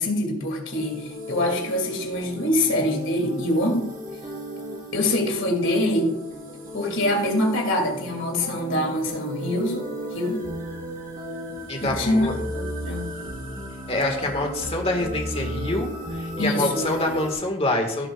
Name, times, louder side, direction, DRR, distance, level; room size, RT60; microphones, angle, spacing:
voice 1, 0.0-3.9 4.9-6.1 6.7-10.4 11.8-13.1 16.4-16.9, left 1 dB, 55° left, 2 dB, 2.5 m, -24 dB
sound 1, 0.7-17.3, equal, 40° right, 3.4 m, -35 dB
voice 2, 11.7-12.3 13.9-18.1, left 1 dB, 25° left, 3 dB, 1.7 m, -26 dB
16.0 x 7.6 x 2.4 m, 0.83 s
head